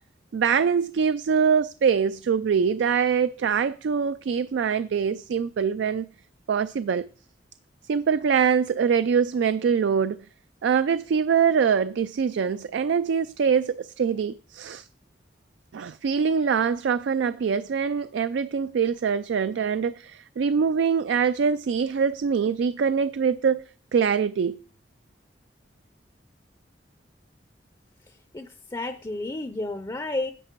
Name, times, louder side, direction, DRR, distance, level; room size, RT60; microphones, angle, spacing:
voice 1, 0.3-6.1 6.5-7.1 7.9-10.2 10.6-14.9 15.7-23.6 23.9-24.6, right 6 dB, 75° right, 0.3 m, -24 dB
voice 2, 28.3-30.3, left 2 dB, 20° left, 0.5 m, -31 dB
10.5 x 6.5 x 4.5 m
head